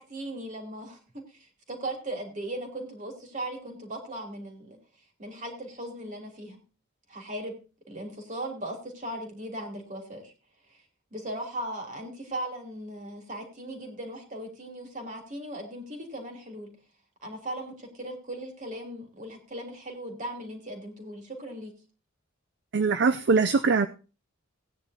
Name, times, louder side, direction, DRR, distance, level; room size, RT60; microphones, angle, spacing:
voice 1, 0.0-4.8 5.2-6.6 7.1-7.5 7.9-10.3 11.1-16.7 17.2-21.7, right 1 dB, 40° right, 2 dB, 3.2 m, -38 dB
voice 2, 22.7-23.9, right 4 dB, 55° right, 10 dB, 0.5 m, -22 dB
17.5 x 9.8 x 2.8 m, 0.33 s
head